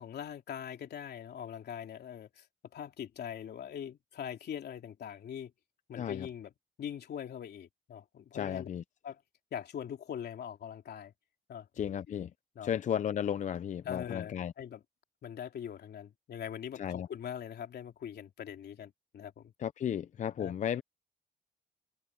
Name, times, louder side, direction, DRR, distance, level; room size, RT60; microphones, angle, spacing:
voice 1, 0.0-2.5 2.7-5.5 5.9-6.5 6.8-8.7 9.0-9.2 9.5-11.1 11.5-11.7 12.1-12.2 12.5-12.7 13.8-14.8 15.2-19.5 20.4-20.5, left 9 dB, 80° left, 3.3 m, -42 dB
voice 2, 6.0-6.3 8.3-8.8 11.8-12.3 12.6-14.5 16.8-17.1 19.6-20.8, left 9 dB, 50° left, 0.4 m, -34 dB
wide cardioid pair, 160°, 17 cm